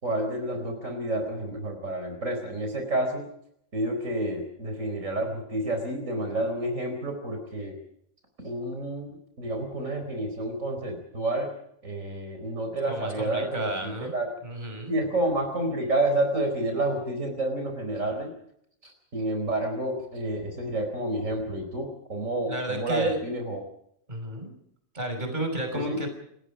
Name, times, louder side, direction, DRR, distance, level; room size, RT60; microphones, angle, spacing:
voice 1, 0.0-3.3 3.7-7.8 8.4-11.5 11.8-14.3 14.9-18.3 18.8-23.6 25.7-26.0, right 1 dB, 70° right, 4 dB, 4.8 m, -29 dB
voice 2, 12.9-14.1 14.4-14.9 22.5-23.2 24.1-24.5 24.9-26.1, right 1 dB, 35° right, 5 dB, 5.9 m, -32 dB
29.0 x 20.0 x 5.1 m, 0.70 s
omnidirectional pair, 1.4 m